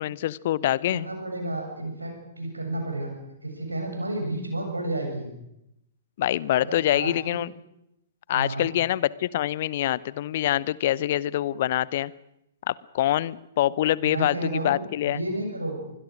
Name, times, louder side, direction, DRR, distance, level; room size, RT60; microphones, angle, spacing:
voice 1, 0.0-1.1 6.2-7.5 8.3-12.1 12.7-15.2, left 13 dB, 45° left, 22 dB, 0.8 m, -25 dB
voice 2, 0.9-3.1 3.4-5.3 6.6-7.4 8.3-8.7 14.0-15.8, right 1 dB, 80° right, 3 dB, 7.7 m, -31 dB
25.0 x 21.5 x 6.4 m, 0.84 s
figure-of-eight pair, 115°, 0 cm